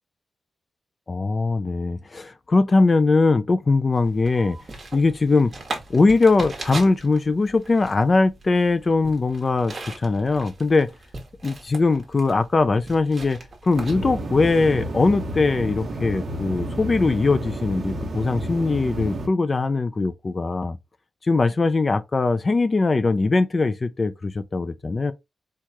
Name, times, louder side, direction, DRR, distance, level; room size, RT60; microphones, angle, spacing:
voice 1, 1.1-4.6 4.9-5.5 5.9-10.9 11.4-20.8 21.2-25.1, left 3 dB, 25° left, 0.3 m, -21 dB
sound 1, 3.9-14.3, right 2 dB, 30° right, 1.3 m, -39 dB
sound 2, 13.7-19.3, right 1 dB, 50° right, 1.1 m, -31 dB
4.6 x 2.3 x 4.0 m
wide cardioid pair, 175°, 0 cm